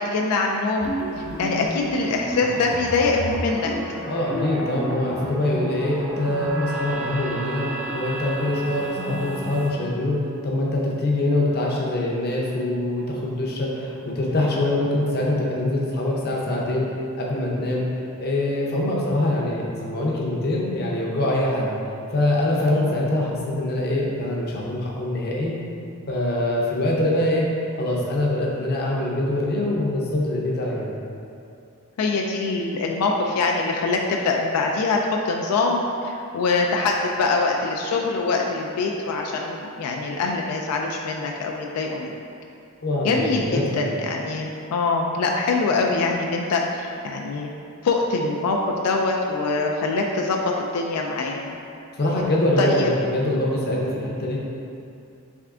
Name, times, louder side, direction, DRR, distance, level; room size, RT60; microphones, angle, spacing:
voice 1, 0.0-3.7 22.7-23.0 32.0-35.0 35.3-42.2 43.0-47.5 47.8-51.6 52.6-52.9, left 3 dB, 90° left, 0 dB, 0.4 m, -24 dB
sound 1, 0.8-9.7, right 2 dB, 10° right, 0.3 m, -31 dB
voice 2, 4.1-7.6 7.9-10.2 10.4-16.9 17.2-17.9 18.2-21.7 22.1-25.5 26.1-27.5 27.8-30.9 42.8-43.8 52.0-54.4, left 1 dB, 45° left, -3 dB, 0.6 m, -24 dB
3.6 x 3.3 x 3.6 m, 2.6 s
head